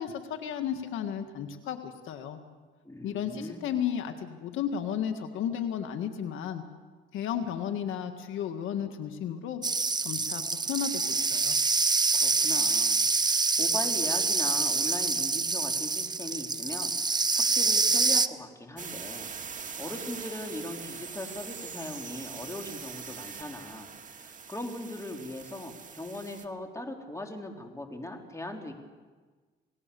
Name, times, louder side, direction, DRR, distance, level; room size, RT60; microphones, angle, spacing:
voice 1, 0.0-2.4 3.0-6.6 7.1-9.6 10.0-11.6, left 8 dB, 85° left, 7 dB, 1.8 m, -33 dB
voice 2, 2.8-3.7 12.1-23.9 24.2-28.7, left 1 dB, 15° left, 3 dB, 3.6 m, -40 dB
sound 1, 9.6-18.3, right 4 dB, 20° right, 0.8 m, -26 dB
sound 2, 18.8-26.5, right 6 dB, 40° right, 2.0 m, -42 dB
28.5 x 18.5 x 6.9 m, 1.4 s
cardioid pair, 90°, 20 cm